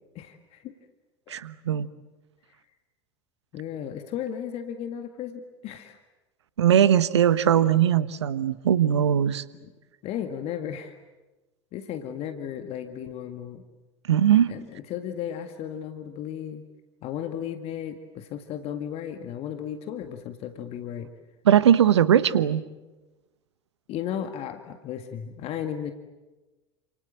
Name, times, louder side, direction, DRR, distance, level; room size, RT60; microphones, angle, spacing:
voice 1, 0.2-0.7 1.3-1.4 3.5-6.0 9.6-9.7 10.0-11.0 11.7-13.6 14.5-16.6 17.0-21.1 23.9-25.9, left 9 dB, 40° left, 8 dB, 1.9 m, -35 dB
voice 2, 1.3-1.9 6.6-9.4 14.1-14.5 21.4-22.6, right 9 dB, 70° right, 16 dB, 1.2 m, -20 dB
29.5 x 27.0 x 7.4 m, 1.1 s
figure-of-eight pair, 75°, 15 cm